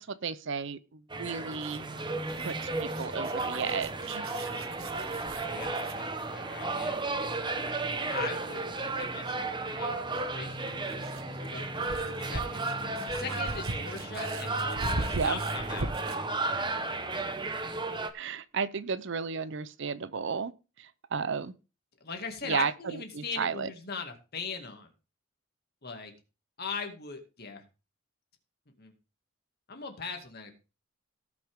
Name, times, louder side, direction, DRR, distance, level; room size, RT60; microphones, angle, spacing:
voice 1, 0.0-1.8 2.4-4.3 15.1-15.4 18.1-20.5 20.8-21.5 22.4-23.7, right 5 dB, 60° right, 16 dB, 0.6 m, -33 dB
sound 1, 1.1-18.1, right 2 dB, 20° right, 0.9 m, -33 dB
sound 2, 1.5-6.0 8.4-8.5 10.5-16.3, right 2 dB, 85° right, 1.4 m, -40 dB
voice 2, 5.5-7.0 8.1-12.7 13.1-15.9 22.0-24.9 25.8-26.1 26.6-27.6 28.8-28.9 29.7-30.5, left 5 dB, 50° left, 4 dB, 2.3 m, -40 dB
17.5 x 6.1 x 3.7 m, 0.31 s
head